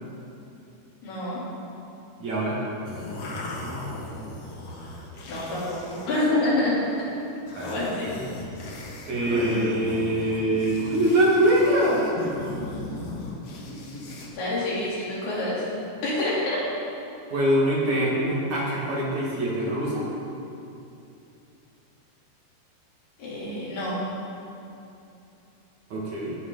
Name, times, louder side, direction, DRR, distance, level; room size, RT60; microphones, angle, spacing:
voice 1, 1.0-1.4 5.3-7.1 7.6-8.1 14.4-15.6 16.0-16.6 23.2-24.0, left 1 dB, 75° left, -8 dB, 5.5 m, -27 dB
voice 2, 2.2-2.6 7.6-7.8 9.1-12.0 17.3-20.1 25.9-26.4, right 1 dB, 55° right, -5 dB, 3.0 m, -23 dB
sound 1, 2.8-6.2 6.6-6.9 7.4-14.3, left 1 dB, 55° left, 1.8 m, -36 dB
19.5 x 9.6 x 4.0 m, 2.7 s
omnidirectional pair, 4.6 m